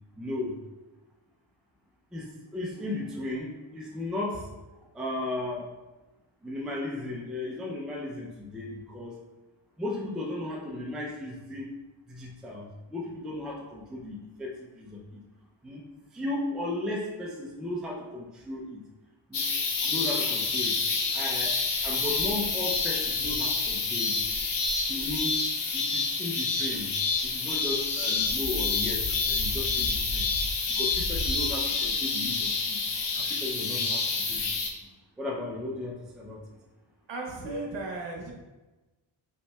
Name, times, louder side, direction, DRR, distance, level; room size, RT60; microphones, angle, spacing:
voice 1, 0.2-0.6 2.1-4.5 4.9-5.7 6.4-9.2 9.8-11.7 12.1-15.2 15.6-15.9 16.1-18.8 19.3-19.4 19.8-20.8 21.1-21.5 21.8-24.2 24.9-25.3 25.7-26.9 27.2-30.3 30.7-32.8 33.1-34.5 35.2-36.4, left 2 dB, ahead, -2 dB, 0.4 m, -35 dB
sound 1, 19.3-34.7, left 4 dB, 55° left, 0.7 m, -28 dB
voice 2, 37.1-38.3, right 2 dB, 60° right, -1 dB, 1.0 m, -35 dB
5.5 x 3.2 x 2.3 m, 1.1 s
wide cardioid pair, 130°, 50 cm